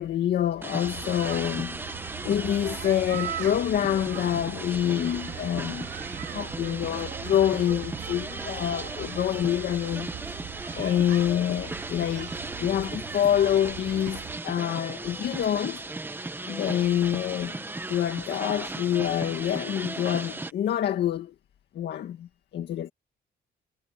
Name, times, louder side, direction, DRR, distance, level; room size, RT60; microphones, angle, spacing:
voice 1, 0.0-5.9 6.3-10.1 10.8-12.3 12.6-15.8 16.5-17.6 17.9-21.3 21.7-22.9, left 10 dB, 65° left, 2.0 m, -27 dB
sound 1, 0.6-20.5, right 2 dB, 10° right, 1.1 m, -37 dB
sound 2, 0.8-14.4, right 11 dB, 70° right, 3.1 m, -40 dB
cardioid pair, 160°, 19 cm